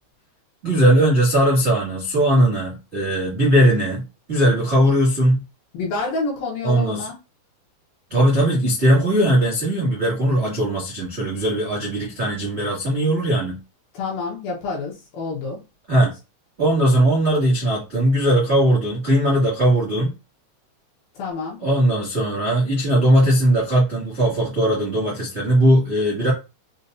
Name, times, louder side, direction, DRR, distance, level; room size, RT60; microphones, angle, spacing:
voice 1, 0.6-4.0 4.3-5.4 6.6-7.1 8.1-13.6 15.9-16.1 16.6-20.1 21.6-26.3, right 1 dB, 45° right, 0.8 m, -19 dB
voice 2, 5.7-7.2 13.9-15.6 21.2-21.6, left 3 dB, 75° left, 2.3 m, -28 dB
6.6 x 2.4 x 2.6 m
omnidirectional pair, 5.0 m